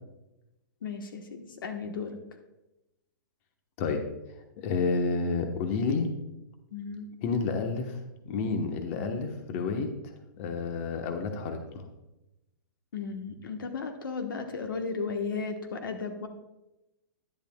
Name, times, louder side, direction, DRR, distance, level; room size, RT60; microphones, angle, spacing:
voice 1, 0.8-2.2 6.7-7.1 12.9-16.3, left 5 dB, 85° left, 5 dB, 1.2 m, -35 dB
voice 2, 4.6-6.1 7.2-8.0 8.3-9.9 10.4-11.8, left 4 dB, 40° left, 5 dB, 1.1 m, -30 dB
10.5 x 10.0 x 2.3 m, 0.97 s
hypercardioid pair, 145°, 11 cm